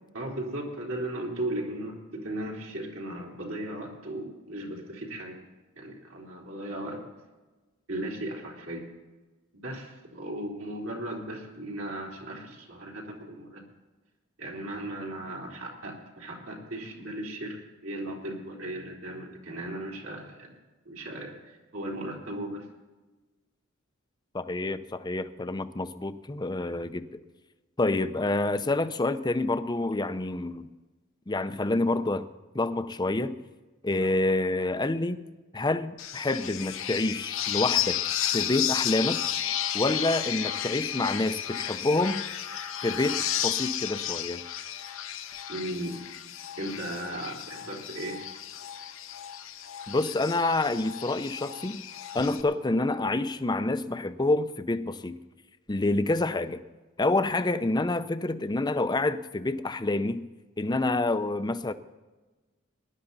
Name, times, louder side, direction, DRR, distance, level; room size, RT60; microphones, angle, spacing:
voice 1, 0.1-5.4 5.8-7.0 7.9-8.8 9.5-13.6 14.4-17.6 17.8-20.5 20.9-22.7 33.9-34.1 45.5-46.0 46.6-48.2 52.5-52.6, right 1 dB, 75° right, 3.6 m, -36 dB
voice 2, 24.3-27.1 27.8-30.7 31.3-32.3 32.5-33.4 33.8-35.2 35.5-38.0 38.3-39.2 39.7-42.2 42.8-44.4 49.9-51.8 52.1-55.2 55.7-56.6 57.0-60.3 60.6-61.7, left 2 dB, 20° left, 0.6 m, -27 dB
sound 1, 36.0-52.4, left 10 dB, 80° left, 1.0 m, -33 dB
19.0 x 11.0 x 4.1 m
head